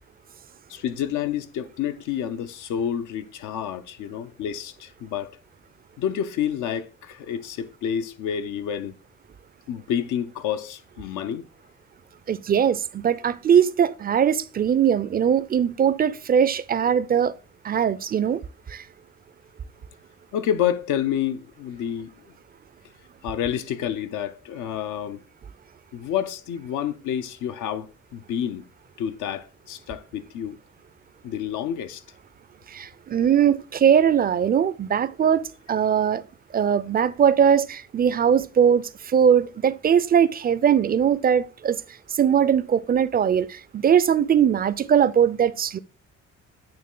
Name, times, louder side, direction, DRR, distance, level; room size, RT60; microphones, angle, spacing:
voice 1, 0.7-5.4 6.0-8.9 9.7-11.4 20.3-22.1 23.2-25.2 25.9-28.7 29.0-30.6 31.2-32.0, left 9 dB, 80° left, 0.6 m, -29 dB
voice 2, 12.3-17.3 17.6-18.4 18.7-18.8 32.7-36.2 36.5-41.8 42.2-45.8, right 8 dB, 30° right, 0.4 m, -20 dB
8.8 x 3.1 x 3.7 m
cardioid pair, 90°, 30 cm